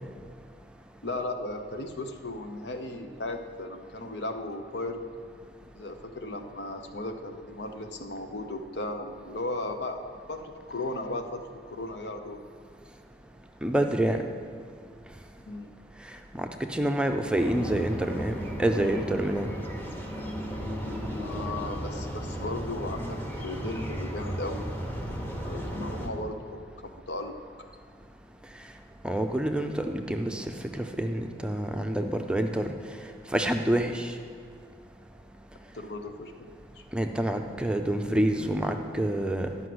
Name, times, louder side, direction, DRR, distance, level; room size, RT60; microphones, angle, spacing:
voice 1, 1.0-5.1 5.7-10.0 10.3-11.4 11.7-12.4 15.5-15.7 21.2-24.6 25.4-26.7 27.1-27.4 35.7-36.5 36.8-36.9, left 2 dB, 80° left, 5 dB, 0.9 m, -36 dB
voice 2, 13.6-14.2 16.4-19.5 29.0-32.7 33.3-34.1 36.9-39.5, right 1 dB, 5° right, 4 dB, 0.5 m, -27 dB
sound 1, 17.3-26.1, equal, 10° left, 1.0 m, -35 dB
11.5 x 5.7 x 7.8 m, 2.1 s
head